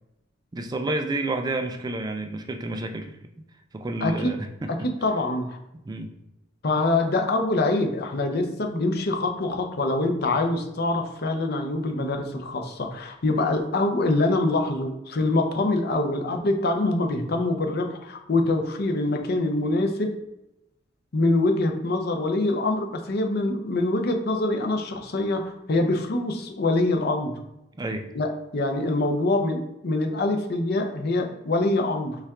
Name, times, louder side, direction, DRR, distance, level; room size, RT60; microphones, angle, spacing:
voice 1, 0.5-3.2 3.7-4.9 5.8-6.1 27.8-28.1, right 2 dB, 20° right, 6 dB, 0.3 m, -30 dB
voice 2, 4.0-4.3 5.0-5.6 6.6-20.1 21.1-27.3 28.1-32.2, left 2 dB, 55° left, 4 dB, 0.6 m, -24 dB
5.6 x 2.4 x 3.4 m, 0.87 s
head